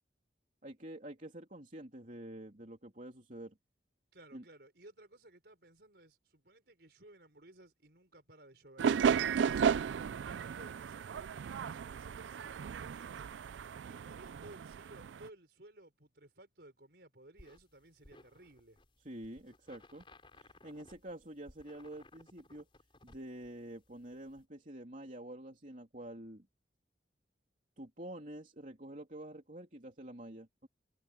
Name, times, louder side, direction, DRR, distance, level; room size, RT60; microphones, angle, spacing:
voice 1, 0.6-3.6 4.3-4.4 19.0-20.0 20.3-22.7 23.0-26.5 27.8-30.7, right 1 dB, 45° right, 3.2 m, -48 dB
voice 2, 4.1-8.9 9.4-13.3 13.8-18.8, right 1 dB, 60° right, 5.3 m, -58 dB
sound 1, 8.8-15.3, right 7 dB, 90° right, 0.4 m, -34 dB
sound 2, 17.4-24.4, left 2 dB, 30° left, 4.6 m, -61 dB
head